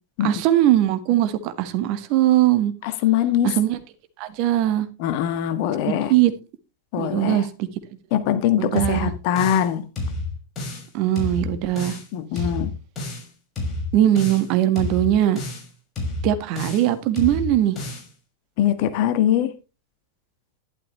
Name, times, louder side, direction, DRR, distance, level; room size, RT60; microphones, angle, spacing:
voice 1, 0.2-2.7 3.4-3.8 4.2-4.9 5.8-6.3 7.0-7.7 8.6-9.1 10.9-12.0 12.3-12.5 13.9-15.4 16.2-17.9, right 13 dB, 45° right, 1.7 m, -20 dB
voice 2, 2.8-3.6 5.0-6.1 6.9-7.4 8.1-9.9 12.1-12.7 18.6-19.5, left 10 dB, 45° left, 1.6 m, -22 dB
sound 1, 8.8-9.7 10.0-10.9 11.2-12.1 12.4-13.3 13.6-14.5 14.8-15.7 16.0-16.9 17.2-18.1, left 2 dB, 25° left, 6.3 m, -30 dB
12.0 x 11.5 x 3.3 m
figure-of-eight pair, 90°, 0 cm